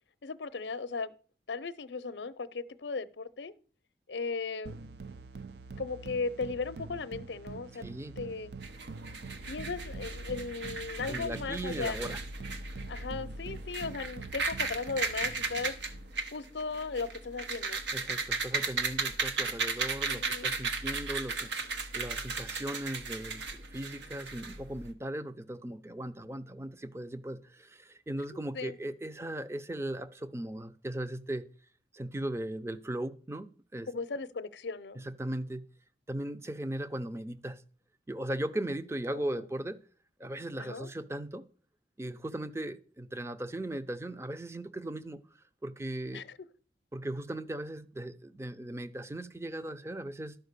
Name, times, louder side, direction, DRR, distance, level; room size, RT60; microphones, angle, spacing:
voice 1, 0.2-1.1 1.5-3.5 4.1-4.8 5.8-8.5 9.5-12.2 12.9-15.7 16.3-17.8 20.1-20.5 28.3-28.8 33.9-35.0 39.1-39.5 40.6-40.9 46.1-46.4, left 4 dB, 80° left, 0.6 m, -37 dB
sound 1, 4.6-16.1, right 4 dB, 65° right, 0.5 m, -45 dB
voice 2, 7.8-8.1 11.1-12.2 17.9-31.4 31.9-33.9 35.0-35.6 36.1-37.6 38.1-39.8 40.2-41.4 42.0-45.2 45.6-46.2 46.9-50.4, right 1 dB, 15° right, 0.5 m, -38 dB
sound 2, 8.6-24.9, right 4 dB, 85° right, 1.1 m, -36 dB
12.0 x 4.9 x 6.6 m
head